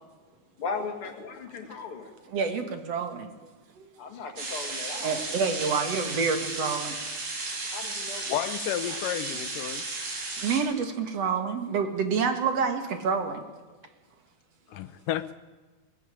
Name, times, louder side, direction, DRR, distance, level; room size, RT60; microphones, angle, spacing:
voice 1, 0.6-2.1 4.0-5.2 7.7-8.4 14.7-14.8, left 4 dB, 45° left, 5 dB, 2.7 m, -37 dB
voice 2, 2.3-3.3 3.8-3.9 5.0-7.0 10.4-13.4, right 5 dB, 55° right, 7 dB, 2.6 m, -28 dB
sound 1, 4.4-10.6, right 3 dB, 85° right, 6.1 m, -34 dB
voice 3, 8.3-9.8 14.8-15.3, left 12 dB, 80° left, 14 dB, 2.5 m, -31 dB
21.5 x 13.5 x 10.0 m, 1.3 s
omnidirectional pair, 3.8 m